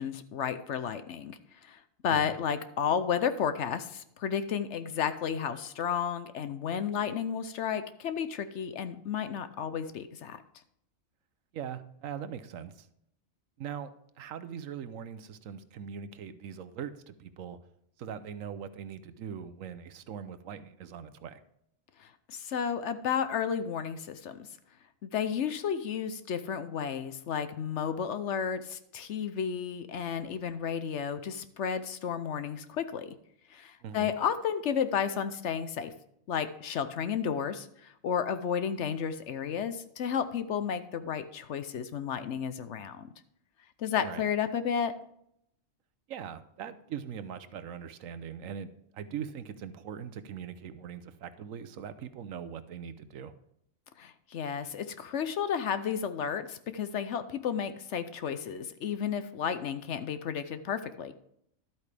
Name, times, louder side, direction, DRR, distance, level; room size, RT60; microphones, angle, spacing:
voice 1, 0.0-10.4 22.0-24.5 25.0-33.1 33.5-35.9 36.3-43.1 43.8-44.9 54.0-61.1, left 7 dB, 65° left, 11 dB, 0.9 m, -32 dB
voice 2, 11.5-12.9 13.6-13.9 14.2-17.6 18.0-21.4 33.8-34.1 44.0-44.2 46.1-53.3, right 8 dB, 75° right, 12 dB, 1.1 m, -41 dB
12.0 x 8.4 x 3.4 m, 0.72 s
omnidirectional pair, 1.4 m